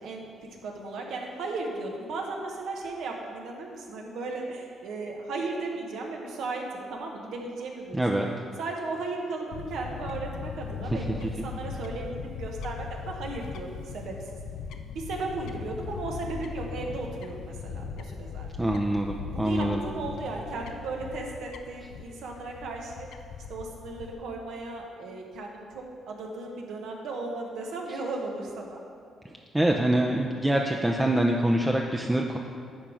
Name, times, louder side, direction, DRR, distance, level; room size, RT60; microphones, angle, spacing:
voice 1, 0.0-8.2 8.6-14.3 14.9-18.5 19.3-23.1 23.5-28.8, right 3 dB, 80° right, 1 dB, 1.2 m, -36 dB
voice 2, 7.9-8.3 18.6-19.8 29.5-32.4, right 1 dB, 10° right, 1 dB, 0.5 m, -25 dB
Fowl / Bird, 9.5-24.1, left 6 dB, 85° left, 0.5 m, -39 dB
10.0 x 3.6 x 6.2 m, 2.4 s
cardioid pair, 90°, 0 cm